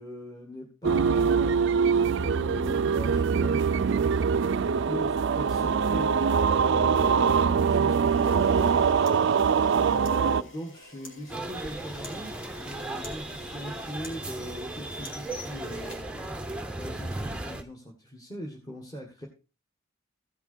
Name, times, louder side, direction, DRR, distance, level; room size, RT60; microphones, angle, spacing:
voice 1, 0.0-4.1 4.6-6.1 6.7-8.7 9.7-19.3, equal, 20° left, 0 dB, 1.6 m, -40 dB
sound 1, 0.8-10.4, right 6 dB, 60° right, 0.4 m, -23 dB
Camera, 8.0-16.8, left 1 dB, 70° left, 2.8 m, -49 dB
sound 2, 11.3-17.6, right 2 dB, 5° right, 0.7 m, -36 dB
15.0 x 5.9 x 4.3 m, 0.32 s
head